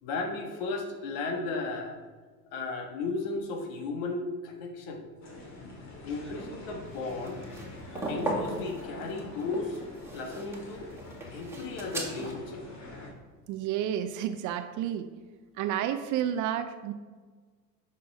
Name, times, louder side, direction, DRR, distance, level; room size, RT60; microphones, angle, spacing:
voice 1, 0.0-2.0 2.5-5.0 6.0-7.4 8.1-9.8 10.1-10.9 11.3-12.6, left 3 dB, 60° left, 4 dB, 1.7 m, -34 dB
sound 1, 5.2-13.1, left 2 dB, 35° left, 2.4 m, -45 dB
sound 2, 6.9-12.3, right 1 dB, 5° right, 1.9 m, -37 dB
voice 2, 13.5-15.1 15.6-16.9, right 10 dB, 40° right, 10 dB, 0.5 m, -30 dB
9.3 x 6.0 x 3.5 m, 1.4 s
hypercardioid pair, 85°, 49 cm